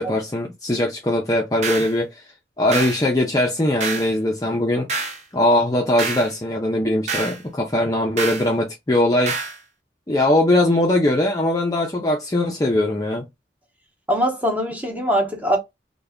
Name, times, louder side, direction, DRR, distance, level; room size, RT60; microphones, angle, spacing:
voice 1, 0.0-2.1 2.6-4.9 5.3-9.3 10.1-13.3, left 1 dB, 20° left, 0.4 m, -20 dB
sound 1, 1.6-1.9 2.7-3.0 3.8-4.1 4.9-5.2 6.0-6.3 7.1-7.4 8.2-8.5 9.3-9.6, right 4 dB, 40° right, 0.6 m, -27 dB
voice 2, 14.1-15.6, equal, 10° right, 0.8 m, -21 dB
3.3 x 2.2 x 3.4 m
head